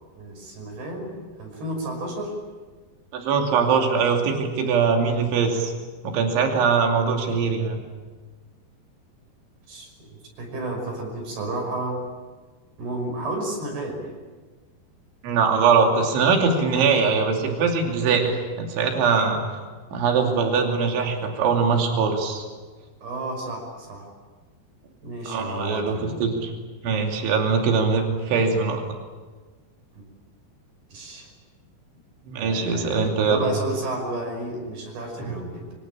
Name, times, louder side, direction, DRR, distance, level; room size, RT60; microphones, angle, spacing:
voice 1, 0.2-2.4 9.7-12.0 12.8-14.2 23.0-24.1 25.0-26.3 29.9-30.0 30.9-31.3 32.4-35.7, right 1 dB, 60° right, 1 dB, 7.7 m, -32 dB
voice 2, 3.1-5.7 6.0-7.8 15.2-19.4 19.9-22.5 25.3-26.5 26.8-28.8 32.3-33.5 35.2-35.3, right 5 dB, 90° right, 3 dB, 5.2 m, -22 dB
25.0 x 24.5 x 8.9 m, 1.4 s
omnidirectional pair, 5.2 m